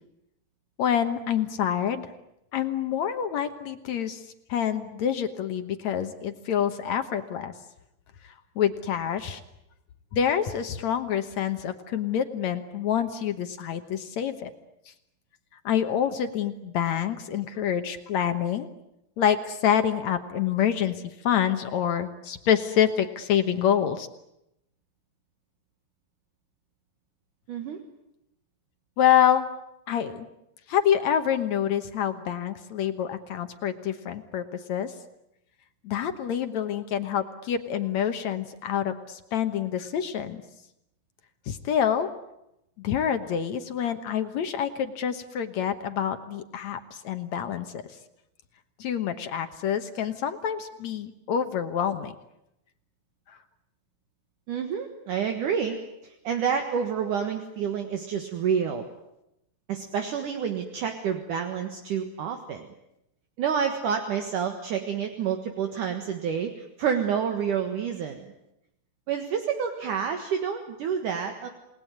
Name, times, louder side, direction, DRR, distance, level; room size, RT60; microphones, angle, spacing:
voice 1, 0.8-2.1 2.5-4.2 4.5-7.5 8.2-9.4 10.1-14.5 15.7-18.7 19.2-24.1 29.0-29.5 29.9-30.3 30.7-34.9 35.8-40.4 41.5-42.1 42.8-47.8 48.8-52.1 53.3-53.4, left 9 dB, 65° left, 8 dB, 2.1 m, -27 dB
voice 2, 27.5-27.8 54.5-58.8 59.7-62.7 63.4-68.3 69.1-71.5, right 7 dB, 65° right, 5 dB, 2.9 m, -29 dB
28.5 x 20.0 x 9.4 m, 0.85 s
omnidirectional pair, 4.2 m